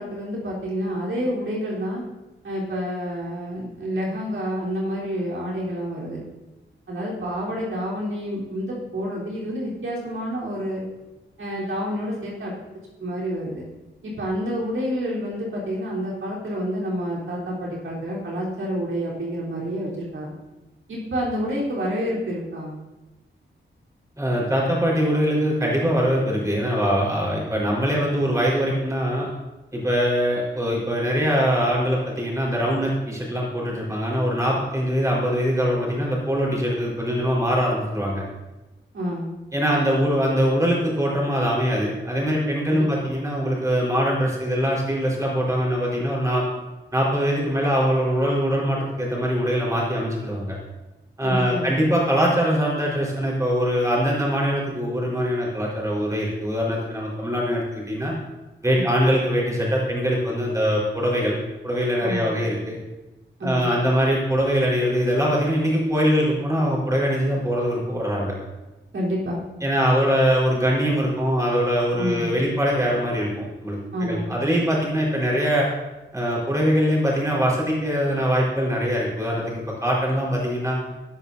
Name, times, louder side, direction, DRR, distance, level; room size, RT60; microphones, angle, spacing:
voice 1, 0.0-2.0 2.4-6.2 6.9-10.9 11.4-12.5 13.0-13.6 14.0-20.4 20.9-22.7 38.9-39.3 42.7-43.1 51.2-51.7 58.7-58.9 62.0-62.3 63.4-63.7 68.9-69.4 72.0-72.3 73.9-74.3, equal, 85° right, -5 dB, 4.0 m, -28 dB
voice 2, 24.2-29.3 29.7-38.2 39.5-46.5 46.9-50.6 51.2-58.1 58.6-61.4 61.6-62.8 63.4-68.3 69.6-75.7 76.1-80.8, equal, 15° right, -4 dB, 4.7 m, -22 dB
19.0 x 12.5 x 2.8 m, 1.1 s
wide cardioid pair, 160°, 20 cm